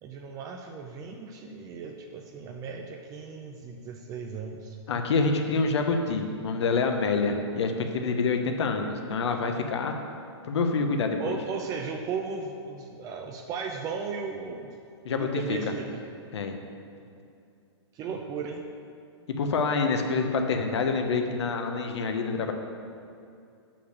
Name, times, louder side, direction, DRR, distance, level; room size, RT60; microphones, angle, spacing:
voice 1, 0.0-4.8 5.5-5.6 11.2-14.8 15.2-16.0 17.9-18.7, right 5 dB, 25° right, 2 dB, 0.5 m, -36 dB
voice 2, 4.9-9.9 10.4-11.3 15.0-15.6 16.3-16.5 19.4-22.5, left 4 dB, 75° left, 5 dB, 0.9 m, -27 dB
6.5 x 5.9 x 6.6 m, 2.5 s
hypercardioid pair, 140°, 14 cm